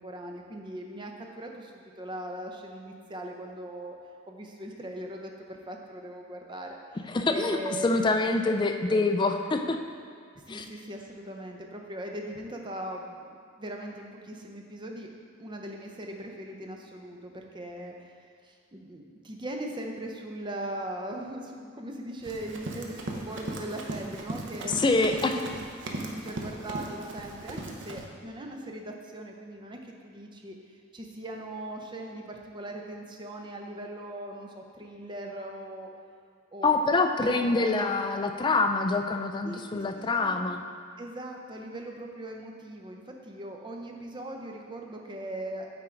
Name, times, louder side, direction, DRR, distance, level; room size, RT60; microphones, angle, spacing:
voice 1, 0.0-4.0 4.3-6.8 7.3-7.9 10.5-15.1 15.4-18.1 18.4-30.6 30.9-35.9 36.5-36.8 37.2-37.8 39.4-39.8 40.2-40.4 41.0-45.7, right 1 dB, 25° right, 1 dB, 0.6 m, -40 dB
voice 2, 7.1-9.8 10.5-10.7 24.6-25.3 36.6-40.6, left 3 dB, 20° left, 5 dB, 0.3 m, -25 dB
Run, 22.2-28.0, right 2 dB, 60° right, 0.8 m, -38 dB
8.5 x 3.8 x 4.5 m, 2.2 s
head